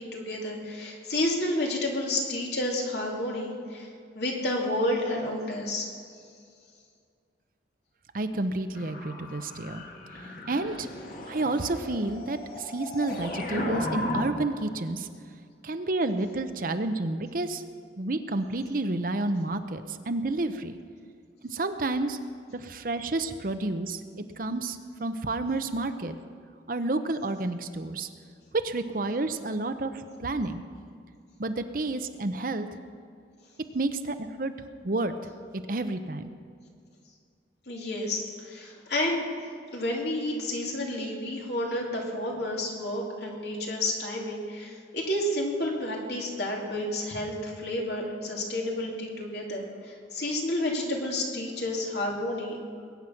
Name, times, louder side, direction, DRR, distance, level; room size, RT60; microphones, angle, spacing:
voice 1, 0.0-3.9 4.1-5.9 37.7-39.3 39.7-52.6, left 1 dB, 70° left, -1 dB, 2.9 m, -30 dB
voice 2, 8.1-9.8 10.5-10.9 11.3-15.1 15.6-17.6 18.0-20.7 21.4-22.2 22.5-26.1 26.7-28.1 28.5-30.6 31.4-32.7 33.7-34.5 34.8-35.1 35.5-36.3, right 2 dB, 50° right, 9 dB, 0.8 m, -30 dB
sound 1, 8.7-14.3, left 1 dB, 50° left, 1.9 m, -35 dB
21.5 x 9.4 x 5.9 m, 2.2 s
head